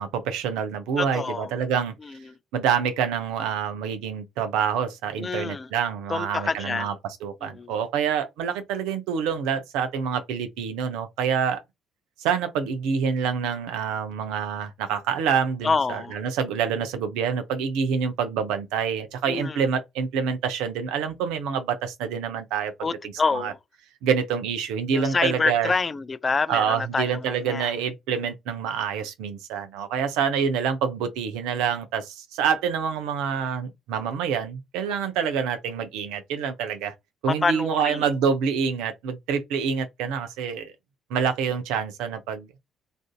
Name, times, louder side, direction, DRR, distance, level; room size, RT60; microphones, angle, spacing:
voice 1, 0.0-1.9 2.5-6.9 7.2-11.6 12.2-22.9 23.3-23.5 24.0-25.7 26.5-36.9 37.2-40.7 41.1-42.5, right 7 dB, 70° right, 0.5 m, -27 dB
voice 2, 1.0-1.5 2.0-2.4 5.2-5.7 6.1-6.9 7.4-7.7 15.6-16.2 19.3-19.6 22.8-23.6 24.9-27.7 37.4-38.1, left 4 dB, 35° left, 0.3 m, -27 dB
2.5 x 2.5 x 2.3 m
hypercardioid pair, 50°, 0 cm